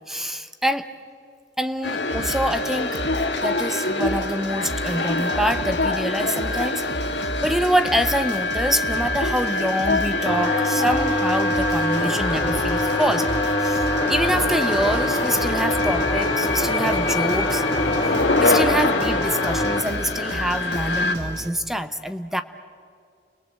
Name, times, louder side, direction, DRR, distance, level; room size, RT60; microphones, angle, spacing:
voice 1, 0.1-0.9 1.6-3.0 3.4-7.2 7.4-13.3 13.6-17.6 18.4-22.4, equal, ahead, 9 dB, 0.8 m, -25 dB
sound 1, 1.8-21.1, left 2 dB, 80° left, 2.1 m, -25 dB
sound 2, 2.1-21.5, right 1 dB, 75° right, 1.1 m, -35 dB
sound 3, 10.3-19.8, left 1 dB, 30° left, 2.4 m, -25 dB
29.5 x 22.0 x 7.9 m, 2.3 s
head